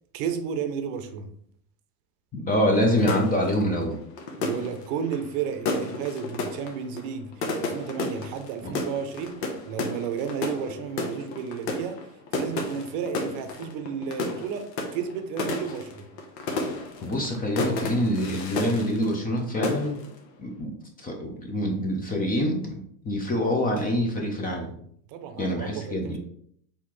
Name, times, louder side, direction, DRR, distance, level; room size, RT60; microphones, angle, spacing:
voice 1, 0.1-1.3 4.4-16.1 25.1-26.2, right 7 dB, 55° right, 0.6 m, -33 dB
voice 2, 2.3-4.0 8.6-8.7 17.0-20.0 20.4-20.7 21.0-24.7 25.4-26.2, equal, 20° left, 0.6 m, -26 dB
sound 1, 3.0-19.4 19.6-20.2, left 2 dB, 85° left, 1.0 m, -32 dB
4.2 x 3.6 x 3.0 m
supercardioid pair, 130°, 48 cm